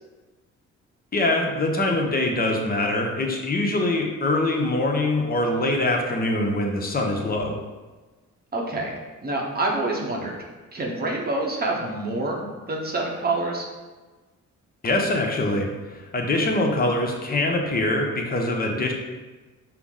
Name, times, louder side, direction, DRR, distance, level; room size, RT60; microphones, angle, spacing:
voice 1, 1.1-7.6 14.8-18.9, left 2 dB, 30° left, 1 dB, 0.7 m, -23 dB
voice 2, 8.5-10.4 10.7-13.7, right 2 dB, 30° right, -1 dB, 0.8 m, -27 dB
5.7 x 2.0 x 3.6 m, 1.3 s
cardioid pair, 90°, 30 cm